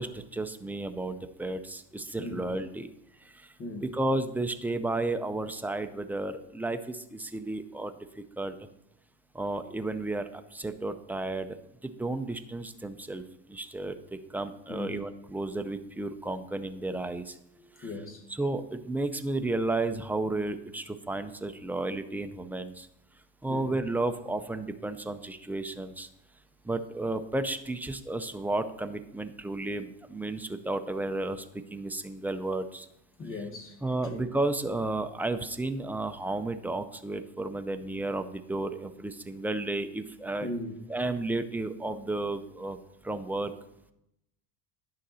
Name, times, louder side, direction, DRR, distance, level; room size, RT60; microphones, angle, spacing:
voice 1, 0.0-2.9 3.2-3.5 3.8-8.6 9.3-13.2 13.5-17.4 17.8-17.9 18.3-22.9 23.4-26.1 26.6-31.5 31.7-32.9 33.8-40.5 40.9-42.8 43.0-43.5, right 2 dB, 5° right, 0.4 m, -33 dB
voice 2, 17.6-18.2 23.5-23.7 33.2-33.8 34.1-34.2 40.4-40.8, left 2 dB, 30° left, 1.4 m, -38 dB
10.5 x 6.5 x 4.1 m
supercardioid pair, 120°, 39 cm